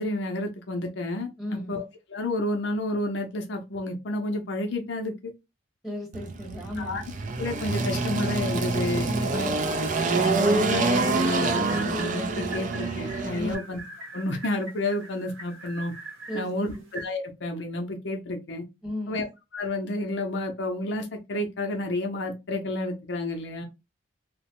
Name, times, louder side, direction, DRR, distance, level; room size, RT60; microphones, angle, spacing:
voice 1, 0.0-1.8 2.1-5.3 6.8-7.0 7.4-9.5 10.1-13.8 14.1-15.9 16.3-18.6 19.1-19.3 19.5-23.6, left 1 dB, 60° left, 0.5 m, -30 dB
voice 2, 1.4-1.8 5.8-7.0 9.1-9.7 13.3-13.7 16.3-16.8 18.8-19.2, left 1 dB, ahead, 1.1 m, -35 dB
Engine, 6.1-13.5, right 3 dB, 40° right, 0.4 m, -26 dB
sound 1, 9.6-17.0, right 2 dB, 75° right, 1.0 m, -42 dB
2.8 x 2.1 x 2.9 m
head